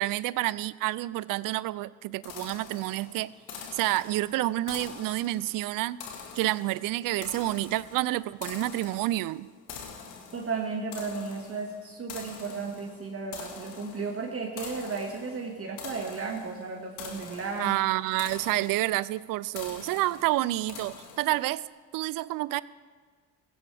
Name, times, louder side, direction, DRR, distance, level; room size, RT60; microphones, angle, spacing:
voice 1, 0.0-3.3 3.7-6.0 6.4-9.5 17.6-21.6 21.9-22.6, right 17 dB, 70° right, 19 dB, 0.5 m, -29 dB
sound 1, 2.2-21.6, left 6 dB, 85° left, 1.9 m, -45 dB
voice 2, 10.3-17.8, right 4 dB, 40° right, 0 dB, 2.0 m, -34 dB
16.5 x 15.5 x 3.5 m, 1.5 s
supercardioid pair, 70°, 35 cm